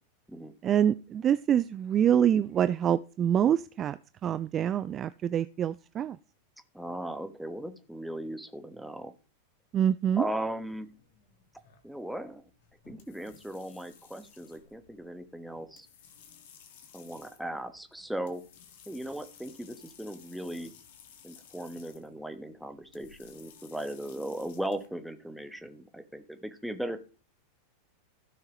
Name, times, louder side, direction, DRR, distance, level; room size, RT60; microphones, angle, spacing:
voice 1, 0.6-6.2 9.7-10.2, right 9 dB, 30° right, 15 dB, 0.3 m, -26 dB
voice 2, 6.7-9.1 10.1-10.9 11.8-12.4 12.9-15.9 16.9-18.4 18.9-20.7 21.2-27.0, right 1 dB, ahead, 8 dB, 1.2 m, -37 dB
sound 1, 10.0-24.9, left 7 dB, 55° left, 1.9 m, -57 dB
16.0 x 6.4 x 3.0 m, 0.35 s
figure-of-eight pair, 90°, 0 cm